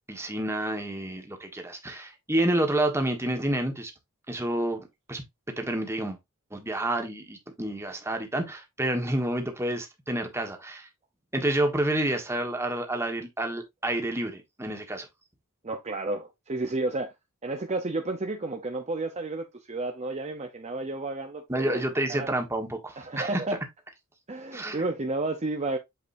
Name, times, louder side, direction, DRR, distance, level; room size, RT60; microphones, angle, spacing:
voice 1, 0.1-3.9 4.3-5.2 5.6-6.2 6.5-10.9 11.3-15.1 21.5-23.4 24.5-24.8, right 1 dB, 10° right, 1.3 m, -29 dB
voice 2, 15.6-17.1 17.4-21.8 22.1-22.3 23.0-23.6 24.3-25.8, right 2 dB, 30° right, 0.8 m, -31 dB
8.2 x 4.8 x 2.6 m
head